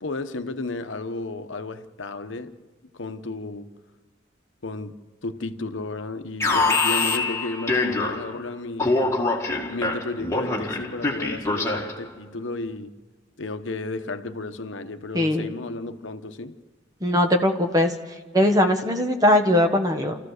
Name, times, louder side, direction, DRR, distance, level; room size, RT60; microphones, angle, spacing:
voice 1, 0.0-2.7 2.9-3.7 4.6-9.0 9.7-13.0 13.4-16.6, left 3 dB, 80° left, 1.0 m, -33 dB
Alarm, 6.4-8.4 8.8-12.0, left 3 dB, 15° left, 1.9 m, -24 dB
voice 2, 15.1-15.5 17.0-17.9 18.3-20.2, left 1 dB, 20° right, 1.4 m, -20 dB
28.5 x 14.5 x 6.6 m
head